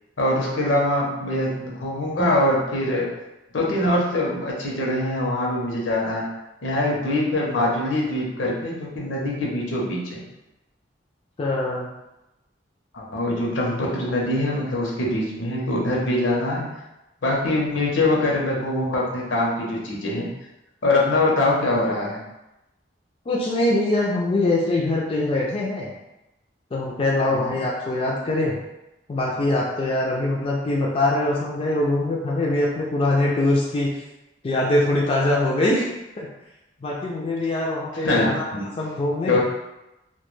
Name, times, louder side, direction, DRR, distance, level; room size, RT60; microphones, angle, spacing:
voice 1, 0.2-3.1 3.5-6.2 6.6-10.2 12.9-16.6 17.2-20.3 20.8-22.2 27.3-27.4 38.0-38.7 39.3-39.4, left 1 dB, 75° left, -2 dB, 0.6 m, -23 dB
voice 2, 11.4-11.9 23.3-25.9 26.7-28.6 29.1-33.9 34.4-35.9 36.2-36.3 36.8-38.4 38.8-39.4, left 2 dB, 30° left, -3 dB, 0.3 m, -23 dB
2.2 x 2.2 x 3.1 m, 0.96 s
head